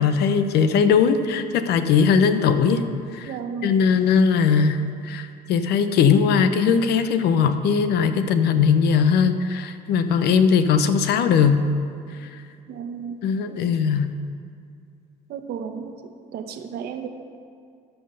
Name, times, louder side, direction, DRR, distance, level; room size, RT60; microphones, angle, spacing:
voice 1, 0.0-3.3 3.6-11.6 12.2-12.3 13.2-14.1, left 6 dB, 75° left, 10 dB, 0.8 m, -19 dB
voice 2, 3.3-3.8 12.7-13.2 15.3-15.9 16.3-17.1, right 7 dB, 70° right, 6 dB, 1.0 m, -33 dB
12.0 x 5.7 x 6.8 m, 2.3 s
cardioid pair, 110°, 17 cm